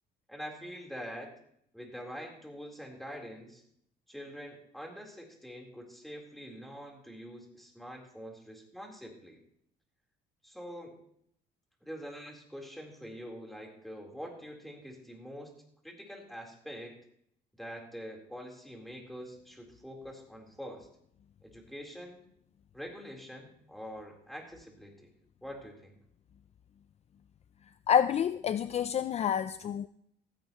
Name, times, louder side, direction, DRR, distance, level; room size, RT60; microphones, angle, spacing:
voice 1, 0.3-1.3 1.7-3.6 4.1-9.4 10.4-10.9 11.8-15.5 15.8-17.0 17.6-20.9 21.4-22.2 22.7-25.1 25.4-26.0, equal, ahead, 1 dB, 3.7 m, -45 dB
voice 2, 27.9-29.9, left 8 dB, 40° left, 13 dB, 0.4 m, -28 dB
16.0 x 15.5 x 3.0 m, 0.70 s
cardioid pair, 110°, 17 cm